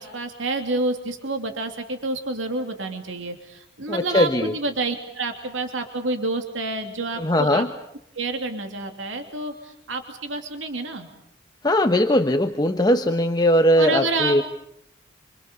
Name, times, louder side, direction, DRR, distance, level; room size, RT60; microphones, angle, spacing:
voice 1, 0.0-7.6 8.1-11.1 13.7-14.4, right 2 dB, 90° right, 5 dB, 3.0 m, -28 dB
voice 2, 3.9-4.5 7.2-7.7 11.6-14.4, left 1 dB, 20° left, 6 dB, 1.0 m, -19 dB
27.5 x 26.0 x 7.0 m, 0.77 s
head